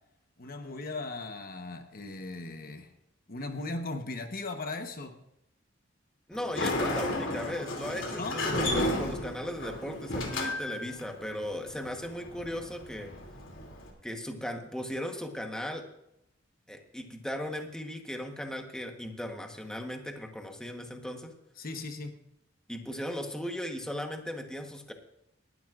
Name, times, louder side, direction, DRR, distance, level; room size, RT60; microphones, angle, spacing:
voice 1, 0.4-2.9 3.3-5.2 8.2-8.4 21.6-22.2, left 3 dB, 50° left, 6 dB, 1.1 m, -38 dB
Sliding door, 6.3-13.9, left 1 dB, 75° left, 2.8 m, -33 dB
voice 2, 6.3-13.1 14.0-15.9 16.7-21.3 22.7-24.9, equal, 5° left, 3 dB, 1.1 m, -37 dB
19.0 x 12.5 x 2.5 m, 0.81 s
head